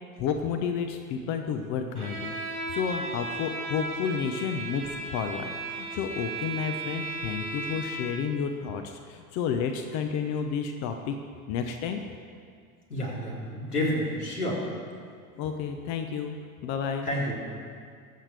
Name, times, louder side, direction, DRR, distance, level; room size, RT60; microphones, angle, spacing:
voice 1, 0.2-2.4 2.7-11.2 11.5-12.0 15.4-16.4 16.6-17.1, left 6 dB, 40° left, 6 dB, 0.9 m, -31 dB
Bowed string instrument, 2.0-8.3, right 2 dB, 90° right, 3.2 m, -35 dB
voice 2, 12.9-14.7 17.0-17.4, left 1 dB, 85° left, -6 dB, 3.5 m, -29 dB
22.0 x 7.3 x 3.5 m, 2.1 s
figure-of-eight pair, 80°, 44 cm